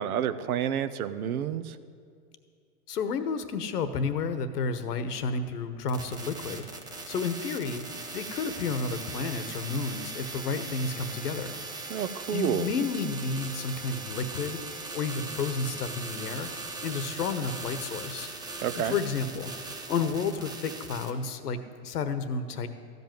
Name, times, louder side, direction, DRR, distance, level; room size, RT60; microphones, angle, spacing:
voice 1, 0.0-1.8 11.9-12.7 18.6-19.0, right 9 dB, 70° right, 14 dB, 0.8 m, -29 dB
voice 2, 2.9-6.6 7.1-7.8 8.1-11.5 12.3-14.6 14.9-16.5 16.8-18.3 18.8-19.5 19.9-22.7, left 4 dB, 90° left, 11 dB, 1.2 m, -31 dB
sound 1, 5.9-21.1, right 3 dB, 10° right, 0.5 m, -39 dB
14.0 x 5.4 x 9.1 m, 2.2 s
hypercardioid pair, 135°, 45 cm